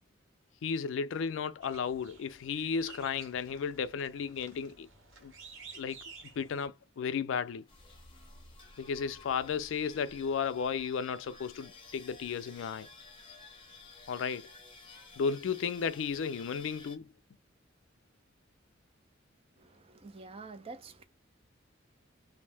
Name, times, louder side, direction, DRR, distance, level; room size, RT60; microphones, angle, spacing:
voice 1, 0.6-4.9 5.2-5.3 5.7-6.0 6.4-7.6 8.8-12.9 14.1-14.5 15.2-17.1, left 6 dB, 75° left, 0.3 m, -34 dB
sound 1, 1.6-6.7, right 4 dB, 85° right, 0.9 m, -53 dB
sound 2, 7.7-17.0, left 3 dB, 25° left, 0.7 m, -53 dB
voice 2, 19.6-21.0, right 3 dB, 30° right, 0.4 m, -47 dB
2.5 x 2.0 x 3.4 m
head